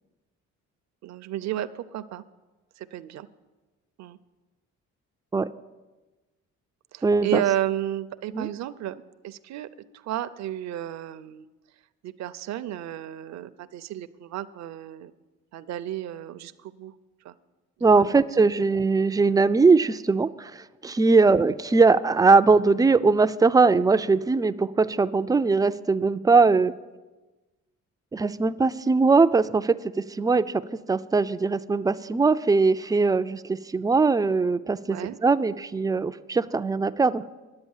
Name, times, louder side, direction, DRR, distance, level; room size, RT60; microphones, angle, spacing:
voice 1, 1.0-2.2 2.8-3.3 4.0-4.2 6.9-9.7 9.9-11.4 12.0-15.1 15.5-16.9 17.2-17.3 17.8-18.4 21.2-21.4 34.9-35.2, right 12 dB, 65° right, 12 dB, 0.6 m, -32 dB
voice 2, 7.0-7.4 8.3-8.5 17.8-26.7 28.1-37.2, right 4 dB, 15° right, 13 dB, 0.3 m, -21 dB
10.5 x 8.1 x 7.2 m, 1.2 s
cardioid pair, 90°, 30 cm